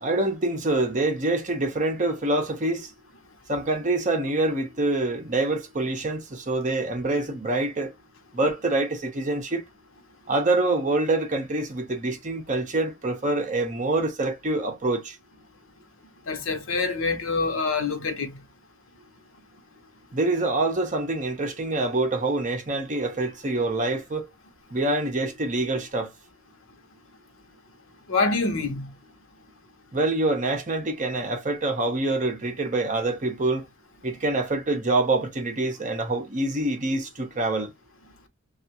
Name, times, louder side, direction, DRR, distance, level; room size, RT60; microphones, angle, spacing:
voice 1, 0.0-2.8 3.5-7.9 8.3-9.6 10.3-15.0 20.1-24.2 24.7-26.1 29.9-33.6 34.0-37.7, right 2 dB, 40° right, 0.8 m, -25 dB
voice 2, 16.3-18.3 28.1-28.9, left 3 dB, 75° left, 0.8 m, -26 dB
3.3 x 2.4 x 2.9 m
head